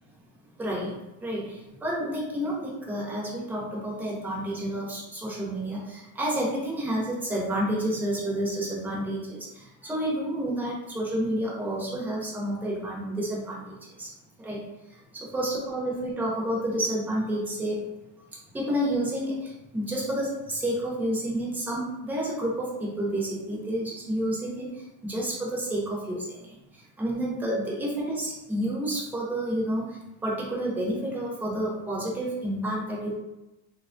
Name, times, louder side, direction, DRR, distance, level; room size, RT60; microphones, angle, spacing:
voice 1, 0.6-0.9 1.2-13.6 14.0-14.1 14.4-14.6 15.3-17.8 18.5-24.7 25.0-26.4 27.0-29.8 30.2-33.2, right 1 dB, 5° right, -5 dB, 0.5 m, -29 dB
3.2 x 2.2 x 2.5 m, 0.97 s
supercardioid pair, 140°, 37 cm